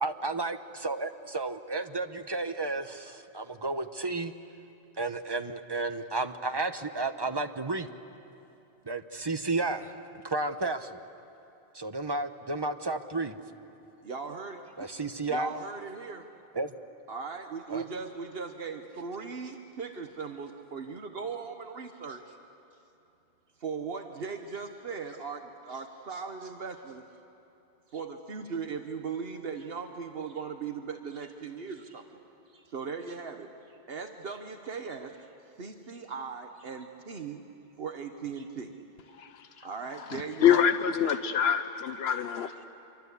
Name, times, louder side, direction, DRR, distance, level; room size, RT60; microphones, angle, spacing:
voice 1, 0.0-4.3 5.0-7.9 8.9-9.9 10.2-11.0 11.7-13.4 14.8-15.5 16.5-16.7 17.7-17.8, right 3 dB, 25° right, 8 dB, 0.9 m, -32 dB
voice 2, 14.0-14.7 15.2-16.3 17.1-22.4 23.6-27.1 27.9-32.2 32.5-35.3 35.6-37.4 37.8-38.7 39.5-40.7, right 5 dB, 70° right, 6 dB, 1.3 m, -38 dB
voice 3, 39.2-39.7 40.1-42.6, left 8 dB, 85° left, 10 dB, 1.0 m, -26 dB
27.0 x 24.0 x 8.3 m, 2.9 s
omnidirectional pair, 1.0 m